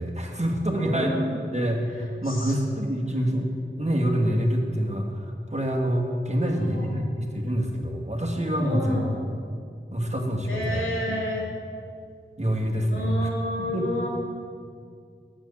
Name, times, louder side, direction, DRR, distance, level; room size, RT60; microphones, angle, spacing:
voice 1, 0.0-1.1 1.5-3.5 3.8-9.0 9.9-11.3 12.4-13.3 13.6-13.9, equal, 35° right, 1 dB, 1.6 m, -26 dB
voice 2, 0.7-1.3 2.2-2.6 6.4-7.0 8.6-9.2 10.5-11.5 12.9-14.1, left 1 dB, 75° left, -5 dB, 3.0 m, -30 dB
9.0 x 6.2 x 7.0 m, 2.2 s
wide cardioid pair, 45°, 21 cm